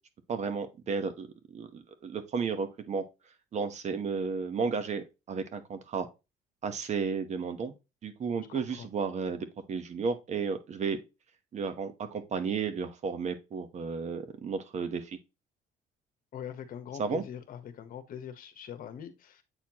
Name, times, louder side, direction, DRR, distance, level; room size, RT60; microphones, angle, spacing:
voice 1, 0.3-1.3 1.5-3.0 3.5-6.1 6.6-7.7 8.0-11.0 11.5-15.2 17.0-17.2, right 5 dB, 45° right, 1.1 m, -33 dB
voice 2, 8.4-8.9 16.3-19.4, left 9 dB, 55° left, 1.1 m, -43 dB
8.0 x 4.3 x 2.9 m
cardioid pair, 110°, 17 cm